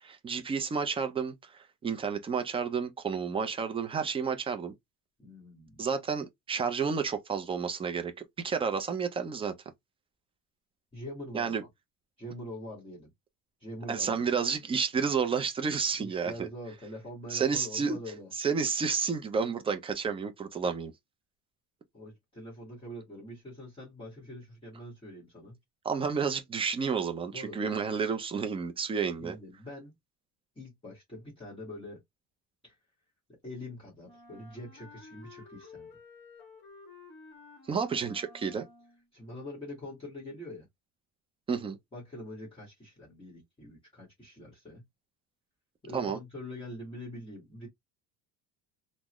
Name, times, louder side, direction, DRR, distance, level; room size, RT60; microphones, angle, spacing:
voice 1, 0.0-4.7 5.8-8.1 8.4-9.5 11.3-11.6 13.9-16.5 17.3-18.0 18.3-20.9 25.8-29.4 37.7-38.7 41.5-41.8 45.9-46.2, right 6 dB, 15° right, 0.3 m, -31 dB
voice 2, 5.2-5.8 10.9-11.7 12.2-13.1 13.6-14.2 16.0-18.3 21.9-25.6 27.3-27.6 29.2-29.9 30.5-32.0 32.6-32.7 33.3-35.9 39.1-40.7 41.9-44.8 45.8-47.7, left 1 dB, 15° left, 1.4 m, -44 dB
Wind instrument woodwind instrument, 34.0-39.1, left 3 dB, 30° left, 1.2 m, -52 dB
3.7 x 2.0 x 2.9 m
cardioid pair, 155°, 37 cm